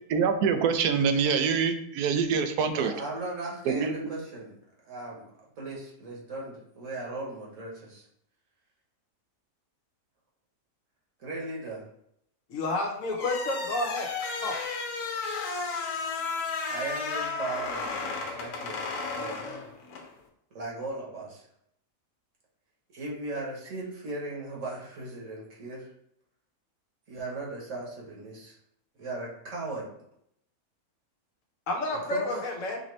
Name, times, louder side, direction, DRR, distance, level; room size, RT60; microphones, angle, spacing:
voice 1, 0.1-2.9 3.7-3.9, right 6 dB, 85° right, 8 dB, 1.1 m, -25 dB
voice 2, 2.7-4.6 4.8-5.3 5.6-8.0 11.2-11.9 16.7-19.7 20.5-21.5 22.9-25.9 27.1-28.6 29.0-29.9 32.1-32.3, right 2 dB, 60° right, -3 dB, 1.4 m, -37 dB
voice 3, 12.5-14.1 14.4-14.5 31.7-32.8, left 2 dB, 65° left, 1 dB, 1.2 m, -30 dB
sound 1, 13.1-20.1, left 4 dB, 80° left, 1.2 m, -33 dB
5.0 x 2.7 x 3.1 m, 0.74 s
omnidirectional pair, 1.6 m